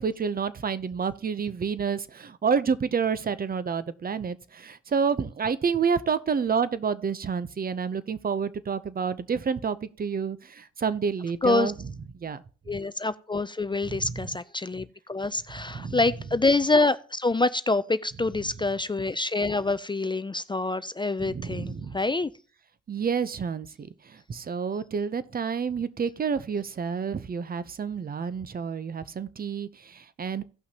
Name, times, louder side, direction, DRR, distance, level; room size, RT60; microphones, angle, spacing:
voice 1, 0.0-11.9 12.2-12.4 13.9-14.3 15.7-16.0 21.2-22.0 22.9-30.4, right 6 dB, 30° right, 0.6 m, -29 dB
voice 2, 11.4-11.7 12.7-22.3, left 3 dB, 15° left, 0.4 m, -26 dB
17.0 x 5.7 x 2.9 m
cardioid pair, 90°, 30 cm